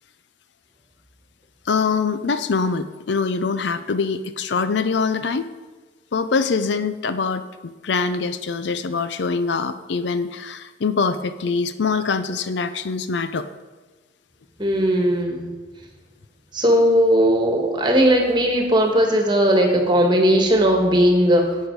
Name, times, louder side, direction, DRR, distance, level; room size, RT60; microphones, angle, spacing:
voice 1, 1.7-5.5 6.1-13.5, left 4 dB, 70° left, 12 dB, 0.5 m, -24 dB
voice 2, 14.6-15.5 16.5-21.6, equal, 25° right, 2 dB, 1.6 m, -18 dB
11.5 x 8.3 x 4.7 m, 1.3 s
head